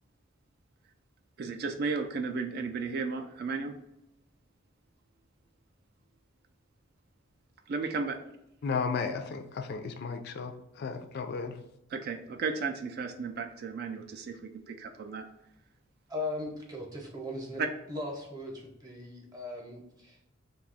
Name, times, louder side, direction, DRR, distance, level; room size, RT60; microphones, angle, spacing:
voice 1, 1.4-3.7 7.7-8.2 11.9-15.3 17.6-17.7, right 4 dB, 55° right, 0.3 m, -34 dB
voice 2, 8.6-11.6, left 5 dB, 55° left, 0.3 m, -34 dB
voice 3, 16.1-17.6 17.9-20.3, left 2 dB, 20° right, 0.7 m, -38 dB
2.7 x 2.2 x 3.9 m
head